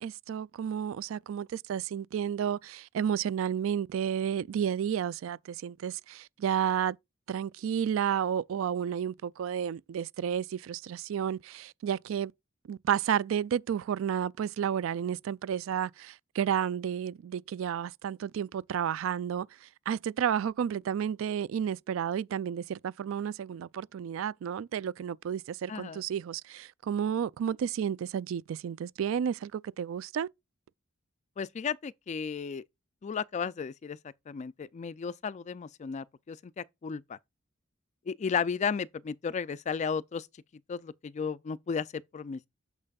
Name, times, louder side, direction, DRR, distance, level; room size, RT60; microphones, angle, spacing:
voice 1, 0.0-7.0 7.3-12.3 12.7-30.3, right 8 dB, 70° right, 0.3 m, -31 dB
voice 2, 25.7-26.0 31.4-32.6 33.0-34.0 34.3-37.2 38.1-40.3 40.7-42.5, left 6 dB, 35° left, 0.3 m, -34 dB
8.7 x 6.5 x 2.3 m
head